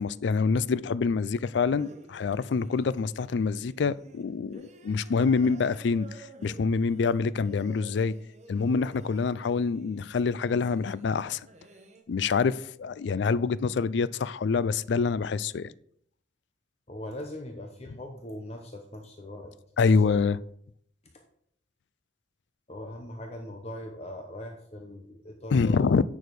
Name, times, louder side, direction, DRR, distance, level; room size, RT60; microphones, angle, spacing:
voice 1, 0.0-8.1 8.5-11.4 12.1-15.7 19.8-20.4 25.5-26.0, left 5 dB, 65° left, 0.4 m, -26 dB
sound 1, 1.8-12.0, right 2 dB, 35° right, 0.9 m, -53 dB
voice 2, 16.9-19.5 20.1-20.3 22.7-25.9, left 1 dB, 35° left, 0.8 m, -40 dB
9.0 x 6.3 x 4.7 m
head